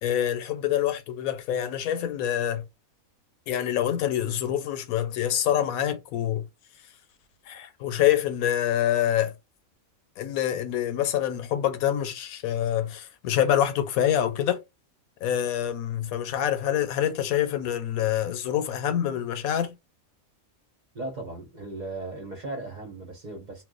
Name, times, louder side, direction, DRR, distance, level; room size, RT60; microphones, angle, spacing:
voice 1, 0.0-2.7 3.5-6.5 7.5-9.3 10.2-14.6 15.2-19.8, left 10 dB, 90° left, 1.1 m, -26 dB
voice 2, 20.9-23.6, right 2 dB, 35° right, 1.0 m, -37 dB
2.5 x 2.1 x 3.7 m
omnidirectional pair, 1.5 m